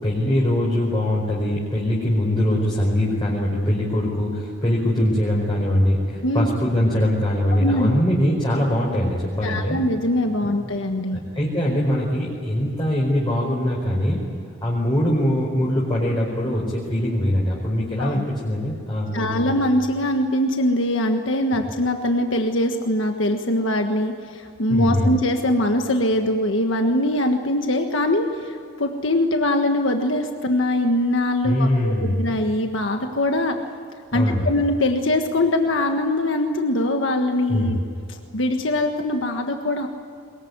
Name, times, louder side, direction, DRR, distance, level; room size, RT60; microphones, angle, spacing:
voice 1, 0.0-9.8 11.1-14.2 14.6-19.5 24.7-25.1 31.4-32.2 34.1-34.5 37.5-37.8, left 1 dB, 25° left, -5 dB, 4.9 m, -22 dB
voice 2, 7.6-7.9 9.4-11.2 18.0-18.2 19.1-33.6 34.1-37.8 38.1-39.9, left 1 dB, 70° left, 4 dB, 1.6 m, -22 dB
23.0 x 22.0 x 9.6 m, 2.3 s
head